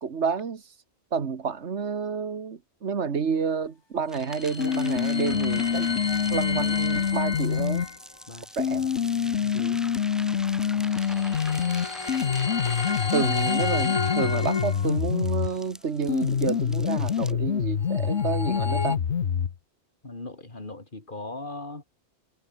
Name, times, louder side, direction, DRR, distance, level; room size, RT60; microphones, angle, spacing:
voice 1, 0.0-0.6 1.1-5.9 6.3-7.8 8.6-8.9 9.5-9.8 13.1-19.0, right 6 dB, 80° right, 1.8 m, -30 dB
sound 1, 4.0-8.0 10.8-15.2 17.7-19.0, left 3 dB, 25° left, 0.9 m, -32 dB
sound 2, 4.1-17.3, equal, ahead, 5.7 m, -44 dB
sound 3, 4.6-7.9 8.6-15.6 16.1-19.6, left 8 dB, 80° left, 1.4 m, -26 dB
voice 2, 8.3-8.8 9.2-9.9 20.0-21.8, left 2 dB, 45° left, 3.3 m, -40 dB
omnidirectional pair, 1.1 m